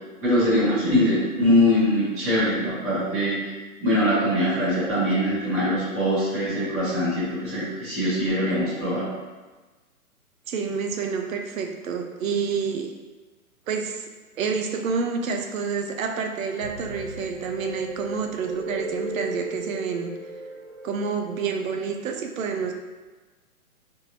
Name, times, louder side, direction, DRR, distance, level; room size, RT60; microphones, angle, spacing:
voice 1, 0.2-3.4 3.8-9.0, left 1 dB, 10° left, -18 dB, 0.4 m, -22 dB
voice 2, 10.5-12.9 13.7-14.1 14.4-20.1 20.8-22.7, right 5 dB, 65° right, 4 dB, 0.5 m, -28 dB
sound 1, 16.6-21.7, right 1 dB, 40° right, 1.0 m, -36 dB
3.8 x 2.6 x 2.8 m, 1.3 s
hypercardioid pair, 140°, 44 cm